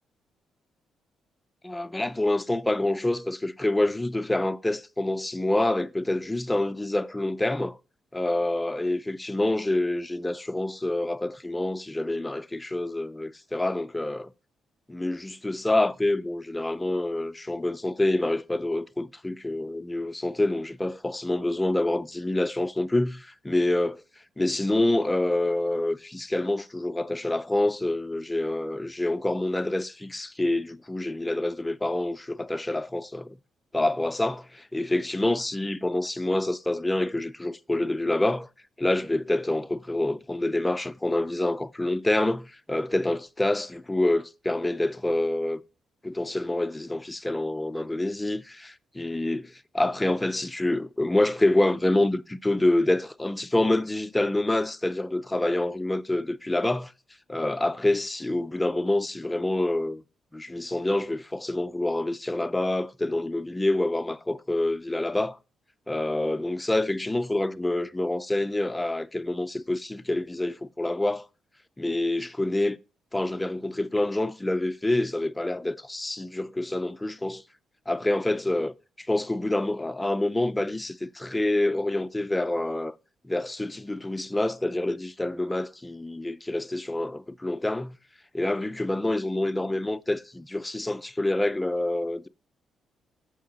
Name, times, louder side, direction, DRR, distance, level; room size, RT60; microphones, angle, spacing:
voice 1, 1.6-7.8 8.1-14.3 14.9-24.0 24.4-33.4 33.7-38.5 38.8-45.6 46.0-56.9 57.3-60.0 60.3-65.4 65.9-71.3 71.8-72.8 73.1-77.4 77.9-82.9 83.2-88.0 88.3-92.3, left 1 dB, 10° left, 0.3 m, -27 dB
6.6 x 5.6 x 3.8 m
cardioid pair, 125°, 0 cm